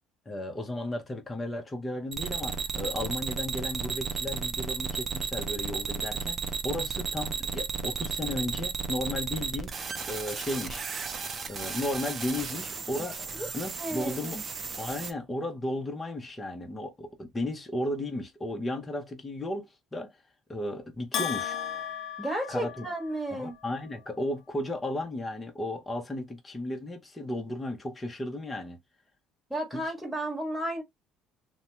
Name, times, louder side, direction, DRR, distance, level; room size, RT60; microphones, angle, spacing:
voice 1, 0.3-10.9 11.5-13.3 13.5-14.4 14.8-20.1 20.5-21.6 22.5-22.9 23.3-28.8 29.7-29.8, left 1 dB, 20° left, 0.8 m, -34 dB
sound 1, 2.1-15.1, right 5 dB, 40° right, 0.6 m, -34 dB
voice 2, 13.8-14.4 22.2-23.5 29.5-30.8, right 1 dB, 5° right, 1.4 m, -33 dB
Bell, 21.1-23.3, left 9 dB, 60° left, 0.6 m, -35 dB
2.7 x 2.2 x 3.1 m
supercardioid pair, 85°, 0 cm